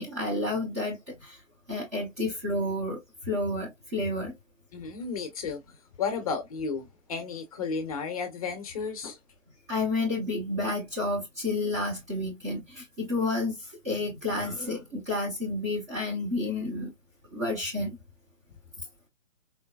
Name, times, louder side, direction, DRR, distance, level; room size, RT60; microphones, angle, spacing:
voice 1, 0.0-1.4 1.7-4.4 9.7-16.9 17.3-18.0, left 2 dB, 15° right, 0.6 m, -30 dB
voice 2, 4.7-5.6 6.0-9.2, left 5 dB, 30° left, 0.7 m, -33 dB
3.9 x 2.0 x 2.2 m
hypercardioid pair, 150°, 38 cm